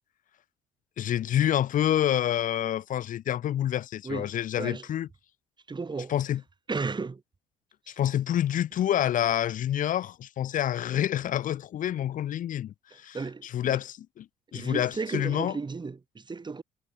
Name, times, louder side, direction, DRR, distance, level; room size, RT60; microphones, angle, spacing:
voice 1, 1.0-5.1 6.1-6.4 7.9-13.2 13.4-14.3 14.5-15.5, left 11 dB, 55° left, 2.0 m, -27 dB
voice 2, 4.0-4.9 5.7-6.1 6.7-7.2 7.9-8.0 12.9-13.8 14.5-16.6, right 4 dB, 30° right, 5.0 m, -34 dB
hypercardioid pair, 55°, 16 cm